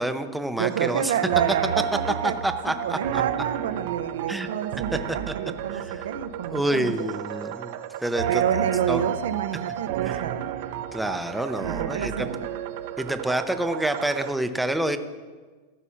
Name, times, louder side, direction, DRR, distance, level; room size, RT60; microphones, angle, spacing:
voice 1, 0.0-1.1 2.2-3.2 4.3-4.5 4.9-5.0 5.3-5.4 5.8-5.9 6.5-8.4 8.9-9.1 10.9-12.3 13.0-15.0, right 1 dB, 5° right, 9 dB, 0.5 m, -28 dB
voice 2, 0.6-2.4 2.7-7.1 8.3-10.5 11.6-12.5, right 9 dB, 90° right, 11 dB, 0.7 m, -29 dB
sound 1, 0.7-14.3, right 10 dB, 50° right, 0.6 m, -31 dB
14.0 x 6.2 x 5.7 m, 1.4 s
supercardioid pair, 160°, 0 cm